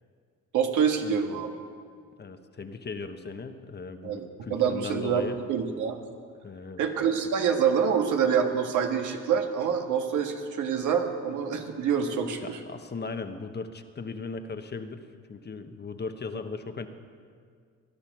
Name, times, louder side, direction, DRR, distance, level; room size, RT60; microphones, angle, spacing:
voice 1, 0.5-1.5 4.0-6.0 6.8-12.6, right 7 dB, 80° right, 4 dB, 1.7 m, -26 dB
voice 2, 2.2-5.4 6.4-6.8 12.4-15.0 15.3-16.9, left 4 dB, 35° left, 8 dB, 1.1 m, -37 dB
20.5 x 11.5 x 6.1 m, 2.1 s
cardioid pair, 90°, 30 cm